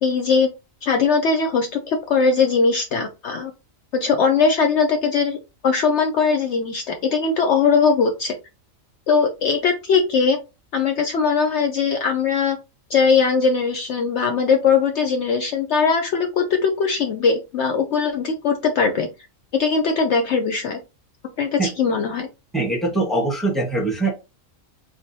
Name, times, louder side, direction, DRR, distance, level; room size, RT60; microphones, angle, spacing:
voice 1, 0.0-0.5 0.8-3.5 3.9-5.4 5.6-8.3 9.1-10.4 10.7-12.6 12.9-19.1 19.5-20.8 21.4-22.3, left 5 dB, 65° left, 4 dB, 0.8 m, -20 dB
voice 2, 22.5-24.1, right 2 dB, ahead, -1 dB, 1.2 m, -22 dB
4.0 x 3.5 x 2.7 m, 0.27 s
omnidirectional pair, 1.4 m